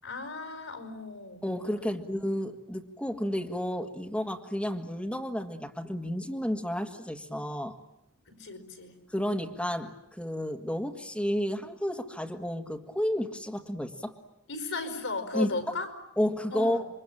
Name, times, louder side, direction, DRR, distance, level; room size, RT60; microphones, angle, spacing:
voice 1, 0.0-1.5 1.8-1.9 8.3-9.0 14.5-15.9 16.5-16.8, left 3 dB, 70° left, 8 dB, 5.3 m, -36 dB
voice 2, 1.4-7.7 9.1-14.2 15.3-15.5 16.2-16.8, equal, 5° left, 2 dB, 1.8 m, -31 dB
28.5 x 23.5 x 8.9 m, 0.82 s
head